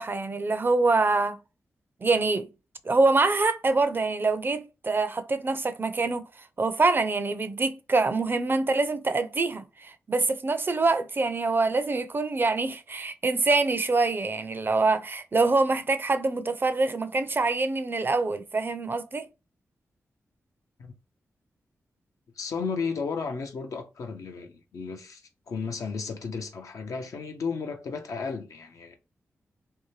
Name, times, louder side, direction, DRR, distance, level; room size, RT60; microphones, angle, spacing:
voice 1, 0.0-1.4 2.0-2.5 2.9-6.3 6.6-19.2, right 3 dB, 40° right, 0.4 m, -25 dB
voice 2, 22.4-25.2 25.5-29.0, left 5 dB, 75° left, 0.6 m, -33 dB
2.7 x 2.2 x 3.1 m
cardioid pair, 50°, 6 cm